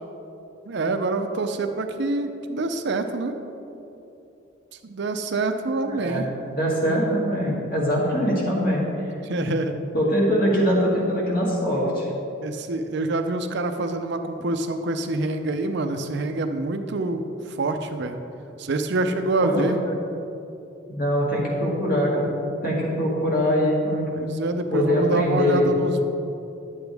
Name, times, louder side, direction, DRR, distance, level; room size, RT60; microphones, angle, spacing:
voice 1, 0.7-3.3 4.8-6.3 9.2-9.7 12.4-18.2 18.6-19.8 24.1-26.0, right 2 dB, 60° right, 7 dB, 0.5 m, -26 dB
voice 2, 6.0-8.8 9.4-9.5 9.9-12.1 19.4-19.8 20.9-22.3 22.6-24.1 24.7-25.7, equal, 45° left, -5 dB, 2.2 m, -23 dB
10.5 x 8.0 x 3.4 m, 2.8 s
head